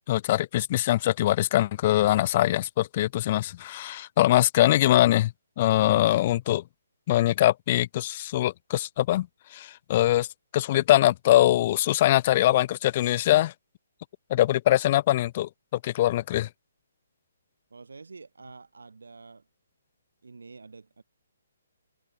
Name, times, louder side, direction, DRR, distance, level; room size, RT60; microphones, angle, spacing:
voice 1, 0.0-6.6 7.1-10.3 10.5-13.5 14.3-16.5, left 14 dB, 40° left, 0.8 m, -23 dB
voice 2, 17.7-19.5 20.2-21.0, right 4 dB, 70° right, 6.9 m, -47 dB
figure-of-eight pair, 135°, 0 cm